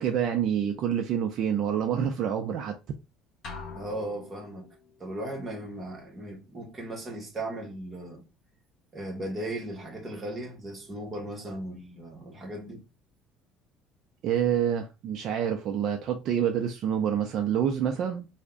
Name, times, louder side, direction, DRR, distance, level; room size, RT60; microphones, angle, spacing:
voice 1, 0.0-2.8 14.2-18.3, right 9 dB, 45° right, 0.4 m, -27 dB
sound 1, 3.4-4.9, left 4 dB, 40° left, 0.7 m, -43 dB
voice 2, 3.7-4.7 5.0-8.2 8.9-12.8, right 1 dB, 15° right, 1.0 m, -37 dB
3.5 x 2.1 x 3.7 m
cardioid pair, 175°, 0 cm